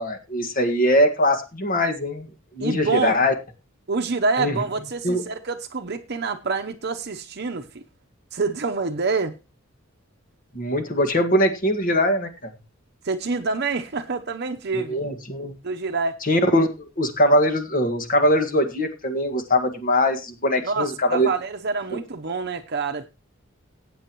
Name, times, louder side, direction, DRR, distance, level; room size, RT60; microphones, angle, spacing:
voice 1, 0.0-2.3 2.5-3.3 4.4-4.6 5.0-5.2 10.5-12.5 14.7-15.5 16.2-16.7 17.0-21.3 21.9-22.0, equal, 45° left, 1.8 m, -21 dB
voice 2, 2.6-3.2 3.9-7.8 8.3-9.3 13.0-15.0 15.6-16.2 20.6-23.1, right 4 dB, 55° right, 0.8 m, -26 dB
19.5 x 8.8 x 3.0 m
head